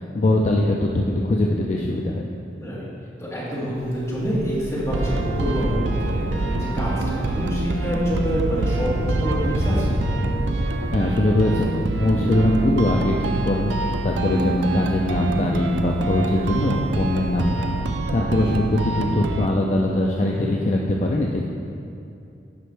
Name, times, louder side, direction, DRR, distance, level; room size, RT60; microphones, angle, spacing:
voice 1, 0.0-2.2 10.9-13.8 14.0-17.5 18.1-21.5, left 1 dB, 40° left, -1 dB, 0.4 m, -21 dB
voice 2, 3.2-10.0 20.2-20.5, equal, 15° left, -9 dB, 1.9 m, -27 dB
Thunder, 3.7-16.6 17.5-17.6, equal, 50° right, 1.7 m, -30 dB
sound 1, 4.9-19.5, right 3 dB, 80° right, 0.4 m, -26 dB
11.0 x 5.4 x 3.3 m, 2.7 s
head